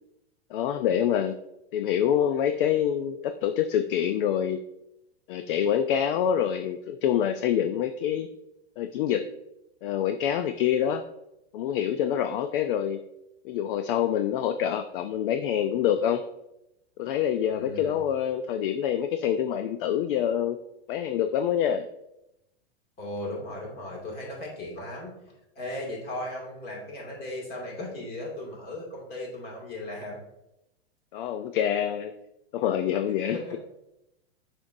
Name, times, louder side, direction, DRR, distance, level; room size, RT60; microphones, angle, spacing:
voice 1, 0.5-1.4 1.7-4.6 5.3-8.3 8.8-9.2 9.8-11.0 11.5-13.0 13.4-16.2 17.0-20.6 20.9-21.9 31.1-32.1 32.5-33.4, left 9 dB, 55° left, 8 dB, 0.5 m, -26 dB
voice 2, 17.5-18.0 23.0-25.1 25.6-30.2 33.2-33.6, left 1 dB, 30° left, -1 dB, 2.2 m, -37 dB
6.8 x 5.3 x 2.6 m, 0.86 s
hypercardioid pair, 135°, 33 cm